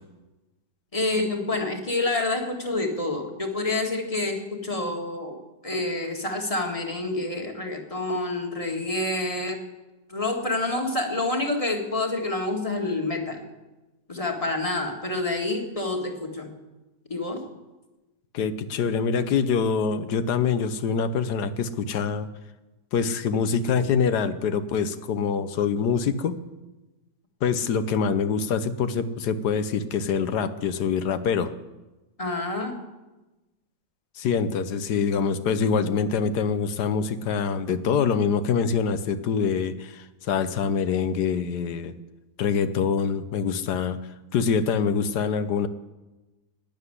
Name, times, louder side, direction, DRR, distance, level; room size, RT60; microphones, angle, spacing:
voice 1, 0.9-5.4 5.6-9.6 10.1-13.4 14.1-16.5 17.1-17.5 32.2-32.8, left 2 dB, 20° left, 2 dB, 1.8 m, -28 dB
voice 2, 18.3-22.3 22.9-26.4 27.4-31.5 34.2-41.9 42.4-44.0 44.3-45.7, left 6 dB, 70° left, 12 dB, 1.3 m, -25 dB
12.0 x 9.8 x 9.7 m, 1.1 s
omnidirectional pair, 1.8 m